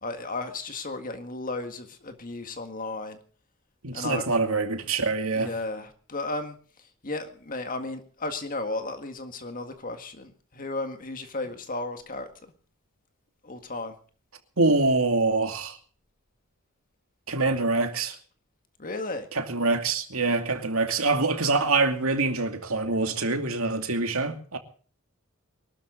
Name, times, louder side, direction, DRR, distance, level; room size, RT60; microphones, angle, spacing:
voice 1, 0.0-3.2 3.9-4.3 5.3-6.6 7.0-12.3 13.4-13.9 18.8-19.3, left 2 dB, 40° left, 1.8 m, -34 dB
voice 2, 3.8-5.5 14.6-15.8 17.3-18.2 19.3-24.6, right 3 dB, 75° right, 2.6 m, -25 dB
23.0 x 13.0 x 3.9 m
head